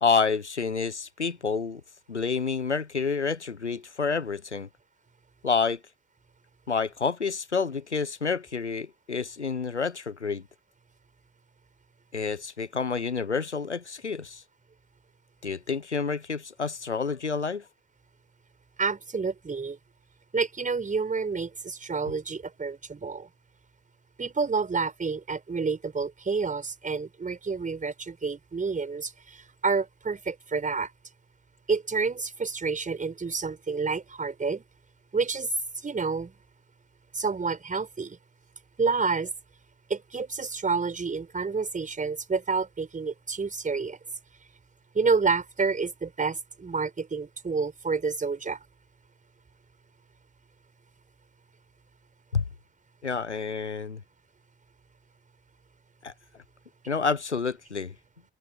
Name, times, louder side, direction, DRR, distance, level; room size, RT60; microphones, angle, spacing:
voice 1, 0.0-1.8 2.1-4.7 5.4-5.8 6.7-10.4 12.1-14.4 15.4-17.6 52.3-52.4 53.0-54.0 56.0-56.1 56.9-57.9, left 5 dB, 85° left, 1.1 m, -28 dB
voice 2, 18.8-19.8 20.3-23.3 24.2-30.9 31.7-34.6 35.1-35.5 35.8-36.4 37.1-38.2 38.8-39.3 39.9-44.0 44.9-48.6, right 4 dB, 25° right, 5.4 m, -29 dB
figure-of-eight pair, 55°, 34 cm